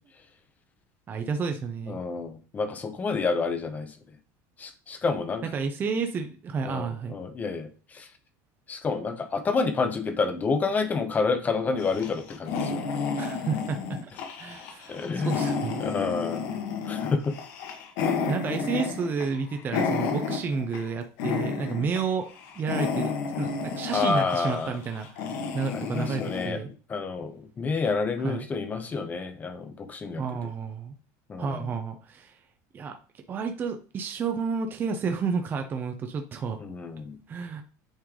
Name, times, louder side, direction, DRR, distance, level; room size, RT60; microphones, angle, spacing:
voice 1, 1.1-2.0 5.5-7.2 13.2-14.1 14.4-15.8 18.3-22.3 22.6-25.2 25.5-26.7 28.2-28.5 30.2-30.9 31.4-32.4 32.7-33.0 33.3-36.6 37.3-37.6, right 5 dB, 25° right, 6 dB, 0.6 m, -31 dB
voice 2, 1.9-3.9 4.6-5.4 6.6-7.7 7.9-8.1 8.7-12.8 14.9-15.3 15.8-16.5 16.9-17.3 21.8-21.9 23.9-24.8 25.7-26.6 26.9-30.2 31.3-31.7 36.6-37.2, left 4 dB, 20° left, 8 dB, 0.9 m, -29 dB
sound 1, 11.8-20.9 21.2-22.0 22.3-26.5, left 5 dB, 70° left, 1.5 m, -31 dB
8.8 x 3.3 x 3.8 m, 0.35 s
cardioid pair, 155°, 9 cm